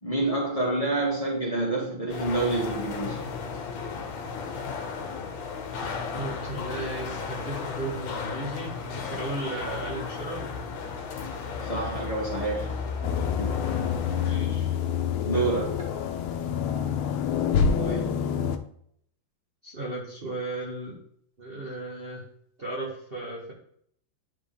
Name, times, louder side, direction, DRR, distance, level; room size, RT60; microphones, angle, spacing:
voice 1, 0.0-3.2 11.6-12.7 13.4-13.7 15.2-15.8, right 2 dB, 15° left, -6 dB, 2.2 m, -28 dB
sound 1, 2.1-14.3, left 5 dB, 70° left, 1.8 m, -34 dB
voice 2, 6.1-10.5 14.1-14.7 15.3-15.5 17.8-18.1 19.6-21.0 21.4-22.3 22.6-23.5, right 2 dB, 30° right, -5 dB, 1.6 m, -35 dB
sound 2, 13.0-18.6, left 7 dB, 90° left, 1.5 m, -27 dB
11.0 x 4.8 x 3.5 m, 0.67 s
omnidirectional pair, 2.2 m